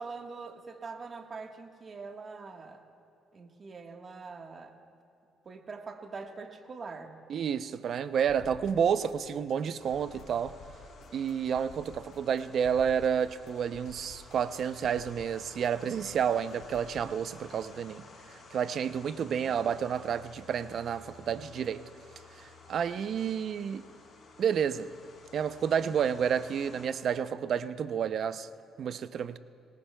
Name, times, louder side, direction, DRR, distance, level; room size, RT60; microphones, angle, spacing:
voice 1, 0.0-2.8 3.3-4.7 5.4-7.2, right 4 dB, 40° right, 1.4 m, -43 dB
voice 2, 7.3-10.5 11.1-18.0 18.5-21.8 22.4-23.8 24.4-24.9 25.3-28.5 28.8-29.4, right 8 dB, 60° right, 0.5 m, -30 dB
sound 1, 8.3-17.0, left 5 dB, 85° left, 2.7 m, -53 dB
sound 2, 9.8-26.9, left 4 dB, 50° left, 3.9 m, -54 dB
24.0 x 19.0 x 2.3 m
cardioid pair, 95°, 0 cm